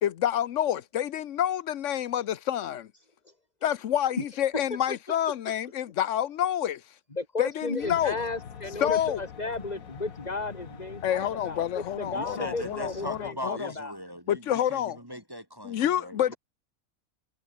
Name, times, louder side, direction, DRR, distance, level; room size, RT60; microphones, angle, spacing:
voice 1, 0.0-2.9 3.6-6.8 7.4-8.1 8.8-9.2 11.0-13.7 14.3-15.0 15.6-16.3, left 10 dB, 65° left, 1.0 m, -28 dB
voice 2, 7.1-14.0, left 3 dB, 30° left, 3.0 m, -34 dB
sound 1, 7.8-13.3, left 7 dB, 85° left, 1.8 m, -45 dB
voice 3, 12.1-16.2, equal, 15° right, 3.5 m, -39 dB
omnidirectional pair, 1.4 m